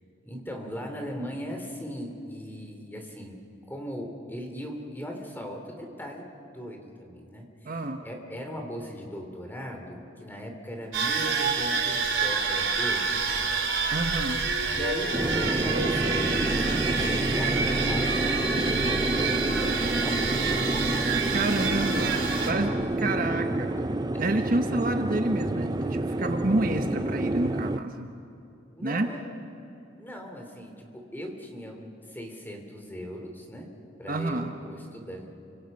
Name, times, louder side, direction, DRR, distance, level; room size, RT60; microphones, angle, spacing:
voice 1, 0.2-3.4 3.7-6.3 6.5-13.3 13.8-13.9 14.7-21.1 25.8-26.0 28.7-29.3 30.0-33.7 34.0-35.3, equal, 10° left, 3 dB, 3.1 m, -39 dB
voice 2, 7.6-8.0 13.9-14.4 21.3-22.2 22.4-23.7 24.2-28.1 28.8-29.1 34.1-34.5, right 2 dB, 45° right, 5 dB, 1.2 m, -28 dB
sound 1, 10.9-22.5, right 4 dB, 80° right, 4.0 m, -27 dB
sound 2, 15.1-27.8, right 1 dB, 20° right, 0.5 m, -28 dB
30.0 x 25.5 x 5.4 m, 2.7 s
head